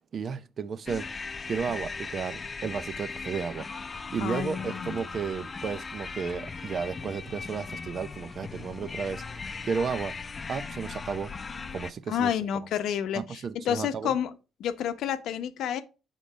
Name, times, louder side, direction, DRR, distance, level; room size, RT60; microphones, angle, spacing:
voice 1, 0.1-1.1 1.5-3.7 4.1-10.1 10.5-11.3 11.7-12.3 13.1-14.1, right 6 dB, 50° right, 0.6 m, -33 dB
sound 1, 0.9-11.9, left 4 dB, 30° left, 0.6 m, -38 dB
voice 2, 4.2-4.9 12.1-14.3 14.6-15.8, left 9 dB, 80° left, 0.7 m, -29 dB
6.6 x 3.9 x 5.0 m
cardioid pair, 90°, 0 cm